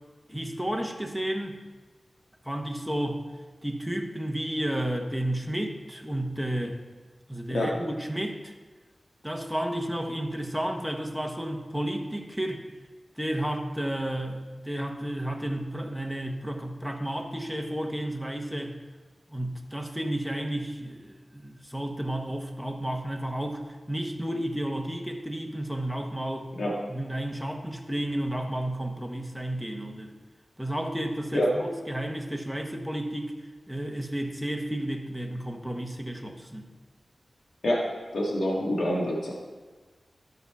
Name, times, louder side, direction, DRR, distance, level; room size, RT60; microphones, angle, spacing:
voice 1, 0.3-1.6 2.4-3.2 3.6-6.8 7.3-8.5 9.2-12.7 13.2-18.8 19.3-26.5 26.9-30.1 30.6-33.3 33.7-36.7, right 1 dB, ahead, 3 dB, 1.1 m, -32 dB
voice 2, 37.6-39.3, left 1 dB, 75° left, -2 dB, 1.6 m, -27 dB
12.5 x 5.6 x 4.7 m, 1.3 s
cardioid pair, 55°, 0 cm